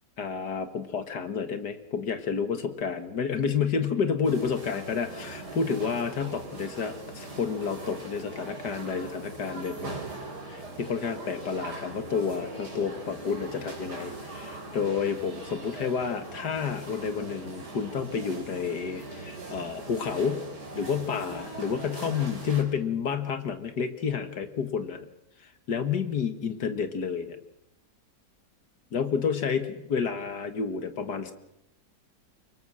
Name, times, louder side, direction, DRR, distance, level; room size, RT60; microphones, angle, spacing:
voice 1, 0.2-10.0 10.4-20.4 20.7-25.1 25.7-27.4 28.9-31.3, left 6 dB, 70° left, 10 dB, 2.2 m, -30 dB
sound 1, 4.2-22.6, right 2 dB, 65° right, 4.7 m, -41 dB
25.0 x 21.5 x 6.3 m, 0.80 s
omnidirectional pair, 1.9 m